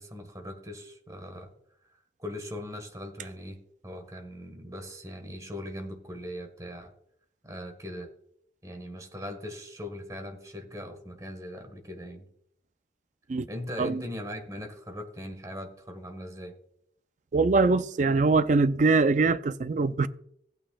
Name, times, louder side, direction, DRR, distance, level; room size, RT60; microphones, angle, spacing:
voice 1, 0.0-1.5 2.2-3.6 3.8-6.9 7.4-8.1 8.6-12.3 13.5-16.5, left 1 dB, 20° right, 1.4 m, -40 dB
voice 2, 17.3-20.1, right 3 dB, 40° right, 0.4 m, -23 dB
16.0 x 8.8 x 2.3 m
head